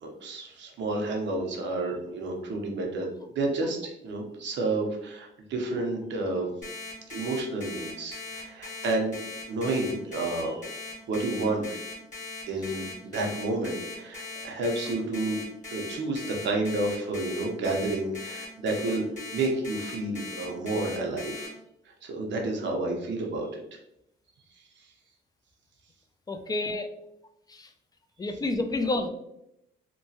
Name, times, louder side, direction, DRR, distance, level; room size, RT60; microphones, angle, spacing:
voice 1, 0.0-6.5 7.1-9.2 9.5-10.8 11.1-11.7 12.5-15.4 15.7-21.5 21.9-23.8, right 2 dB, 65° right, 1 dB, 0.7 m, -30 dB
Alarm, 6.6-21.5, left 4 dB, 40° left, 1.4 m, -39 dB
voice 2, 26.3-26.9 28.2-29.1, left 2 dB, 20° left, 7 dB, 0.3 m, -28 dB
3.0 x 2.2 x 2.7 m, 0.81 s
cardioid pair, 90°, 20 cm